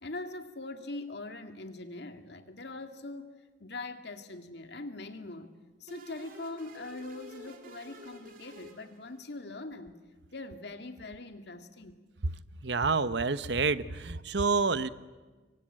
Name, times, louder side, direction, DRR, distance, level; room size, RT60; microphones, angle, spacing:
voice 1, 0.0-3.3 3.6-5.5 5.8-10.0 10.3-12.3 12.8-12.9, left 2 dB, 65° left, 7 dB, 2.1 m, -42 dB
sound 1, 5.9-9.5, right 1 dB, 45° right, 3.4 m, -50 dB
voice 2, 12.6-14.9, right 4 dB, 65° right, 14 dB, 0.9 m, -28 dB
26.0 x 23.5 x 8.9 m, 1.3 s
head